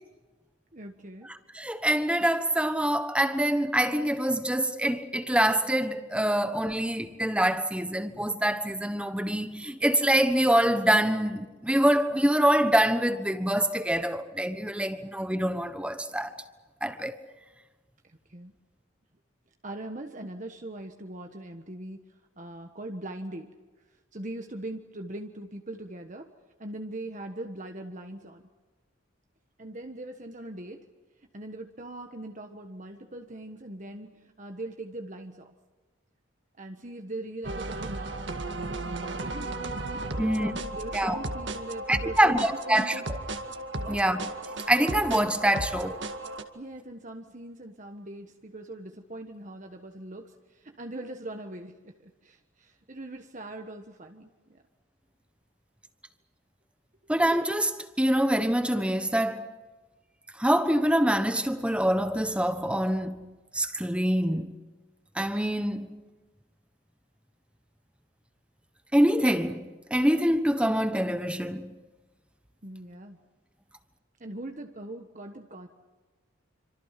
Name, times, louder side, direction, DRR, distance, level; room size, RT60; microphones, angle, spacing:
voice 1, 0.7-1.3 18.3-18.5 19.6-22.0 22.4-23.5 24.1-26.3 26.6-28.4 29.6-30.8 31.3-35.5 36.6-39.6 40.2-43.1 43.8-44.0 46.5-54.6 72.6-73.2 74.2-75.7, right 1 dB, 35° right, 1.3 m, -41 dB
voice 2, 1.3-16.3 16.8-17.2 40.2-40.5 40.9-41.2 41.9-43.0 43.9-44.3 44.7-46.0 57.1-59.5 60.4-63.3 63.5-64.6 65.1-65.9 68.9-71.7, right 1 dB, 5° right, 1.2 m, -25 dB
sound 1, 37.4-46.4, right 2 dB, 60° right, 2.1 m, -35 dB
27.5 x 26.0 x 5.9 m
head